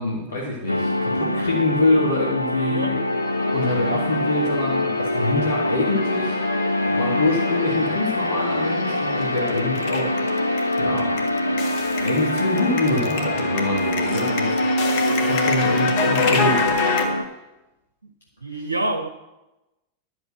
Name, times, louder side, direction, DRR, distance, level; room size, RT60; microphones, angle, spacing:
voice 1, 0.0-3.0 3.5-6.4 6.9-10.5 10.8-11.1 12.0-14.8 15.2-16.6 18.5-18.6, left 2 dB, 65° left, 2.0 m, -25 dB
sound 1, 0.7-17.2, left 1 dB, 90° left, 0.5 m, -24 dB
sound 2, 2.8-17.1, left 4 dB, 45° left, 1.5 m, -28 dB
voice 2, 18.4-19.1, right 2 dB, 80° right, 0.6 m, -27 dB
11.0 x 6.0 x 7.8 m
figure-of-eight pair, 90°, 0 cm